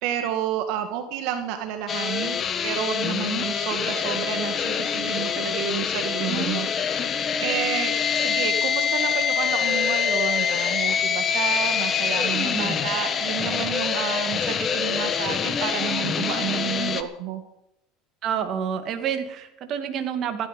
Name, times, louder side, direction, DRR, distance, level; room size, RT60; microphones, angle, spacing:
voice 1, 0.0-6.7 6.9-17.4, right 10 dB, 65° right, 6 dB, 2.0 m, -30 dB
sound 1, 1.9-17.0, left 7 dB, 30° left, 1.4 m, -25 dB
voice 2, 6.2-6.6 12.5-12.7 18.2-20.5, right 8 dB, 45° right, 6 dB, 2.4 m, -29 dB
16.0 x 13.0 x 5.4 m, 0.84 s
supercardioid pair, 125°, 0 cm